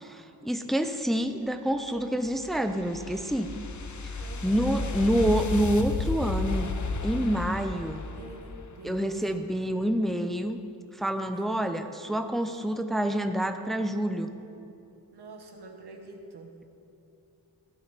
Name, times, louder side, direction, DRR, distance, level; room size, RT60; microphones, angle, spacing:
voice 1, 0.0-3.5 4.4-6.7 7.0-8.0 8.8-10.6 11.0-14.3, equal, ahead, 7 dB, 0.7 m, -27 dB
sound 1, 1.8-9.0, left 3 dB, 50° left, 0.9 m, -33 dB
voice 2, 4.2-4.6 8.0-9.2 11.3-11.5 12.5-12.6 15.1-16.5, right 2 dB, 80° right, 3 dB, 1.4 m, -47 dB
16.5 x 9.3 x 4.2 m, 2.7 s
cardioid pair, 45°, 39 cm